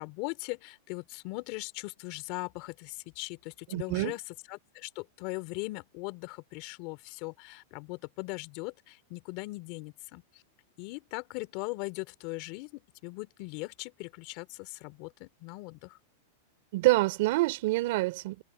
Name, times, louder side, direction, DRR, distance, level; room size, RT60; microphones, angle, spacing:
voice 1, 0.0-10.4 10.8-16.0, left 25 dB, 45° left, 3.3 m, -39 dB
voice 2, 3.7-4.2 16.7-18.4, right 20 dB, 60° right, 3.6 m, -26 dB
supercardioid pair, 145°, 0 cm